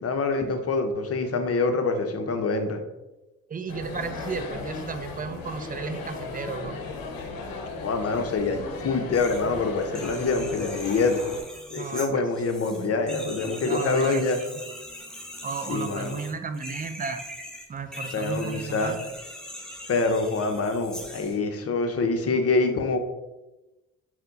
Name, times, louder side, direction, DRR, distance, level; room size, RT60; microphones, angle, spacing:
voice 1, 0.0-2.8 7.8-11.2 11.7-14.4 15.7-16.2 18.1-19.0 19.9-23.0, left 3 dB, 45° left, 6 dB, 0.7 m, -25 dB
voice 2, 3.5-6.8 11.8-12.3 13.6-14.6 15.4-17.2 17.7-19.0, right 5 dB, 25° right, 8 dB, 0.4 m, -34 dB
sound 1, 3.7-11.4, left 3 dB, 80° left, 0.7 m, -36 dB
sound 2, 9.1-9.5 9.8-21.4, left 1 dB, ahead, 0.8 m, -41 dB
4.2 x 2.2 x 3.9 m, 1.0 s
supercardioid pair, 55°, 35 cm